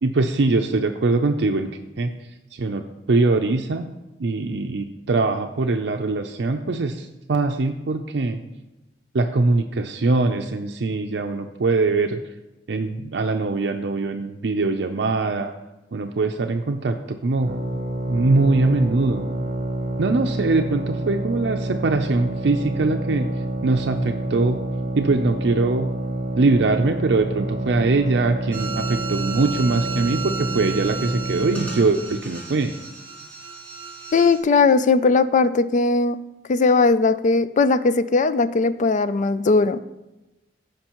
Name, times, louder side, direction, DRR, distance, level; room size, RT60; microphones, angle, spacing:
voice 1, 0.0-1.7 2.0-2.1 2.5-3.8 4.2-8.4 9.1-12.2 12.7-15.5 15.9-17.5 18.1-19.3 20.0-23.3 23.6-24.6 24.9-25.9 26.4-32.8, right 3 dB, 70° right, 4 dB, 0.5 m, -22 dB
sound 1, 17.4-31.9, right 2 dB, 45° right, 1.1 m, -28 dB
sound 2, 28.5-34.4, right 5 dB, 10° left, 2.1 m, -34 dB
voice 2, 34.1-36.2 36.5-39.8, left 4 dB, 45° left, 13 dB, 0.4 m, -18 dB
15.0 x 5.2 x 3.0 m, 0.99 s
head